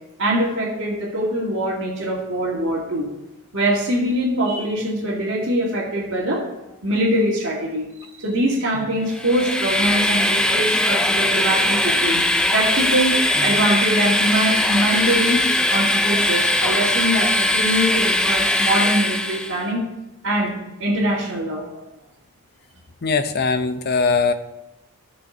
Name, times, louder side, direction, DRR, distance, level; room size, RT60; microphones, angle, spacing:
voice 1, 0.2-3.1 3.5-6.4 6.8-12.2 12.5-15.4 15.7-19.8 20.2-20.5 20.8-21.8, right 1 dB, 65° right, -9 dB, 2.4 m, -23 dB
Train, 9.1-19.6, left 1 dB, 5° left, 0.4 m, -20 dB
voice 2, 23.0-24.3, left 4 dB, 45° left, 9 dB, 0.7 m, -20 dB
14.5 x 6.3 x 3.9 m, 0.98 s
head